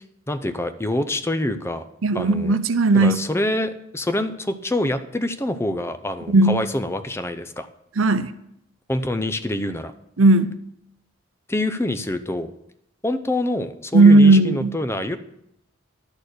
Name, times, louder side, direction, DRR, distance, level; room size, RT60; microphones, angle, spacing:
voice 1, 0.0-1.8 2.1-2.6 2.9-7.7 8.9-9.9 11.5-12.5 13.0-15.2, left 1 dB, 10° left, 10 dB, 0.5 m, -26 dB
voice 2, 2.0-3.2 6.3-6.6 8.0-8.3 10.2-10.5 13.9-14.7, right 2 dB, 80° right, 12 dB, 0.7 m, -15 dB
11.5 x 6.7 x 6.6 m, 0.77 s
head